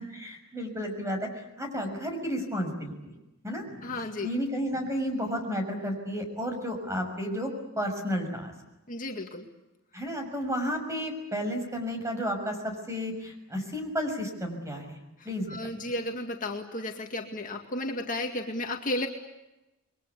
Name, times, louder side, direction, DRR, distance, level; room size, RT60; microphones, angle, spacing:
voice 1, 0.0-3.1 3.4-3.6 4.2-8.5 9.9-15.0 15.2-15.5, equal, 15° right, 4 dB, 6.5 m, -32 dB
voice 2, 3.7-4.3 8.9-9.5 15.2-19.1, left 1 dB, 40° left, 2 dB, 2.1 m, -33 dB
29.0 x 22.5 x 8.3 m, 0.97 s
head